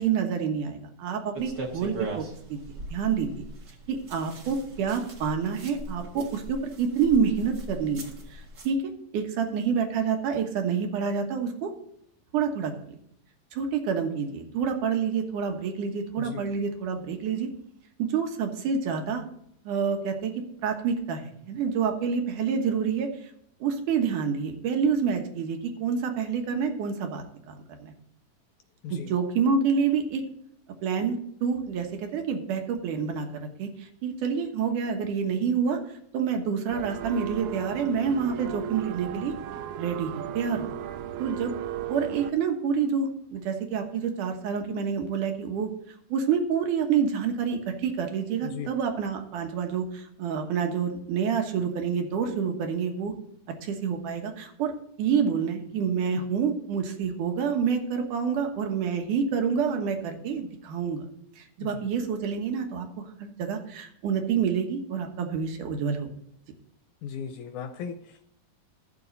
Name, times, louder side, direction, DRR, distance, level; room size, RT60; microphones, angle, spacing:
voice 1, 0.0-3.4 3.9-8.8 9.1-11.7 12.3-12.7 13.5-17.5 18.0-19.2 19.6-23.3 23.6-27.9 28.9-30.2 30.8-35.8 36.1-39.3 39.8-40.7 41.2-41.5 41.9-45.7 46.1-53.1 53.6-61.1 61.4-62.9 63.2-66.1, right 6 dB, 70° right, 4 dB, 2.6 m, -28 dB
sound 1, 1.3-8.7, right 1 dB, 40° right, 1.8 m, -40 dB
sound 2, 36.7-42.3, right 10 dB, 90° right, 1.6 m, -36 dB
voice 2, 67.0-68.2, left 7 dB, 75° left, 7 dB, 1.9 m, -37 dB
13.5 x 7.0 x 4.0 m, 0.71 s
omnidirectional pair, 4.0 m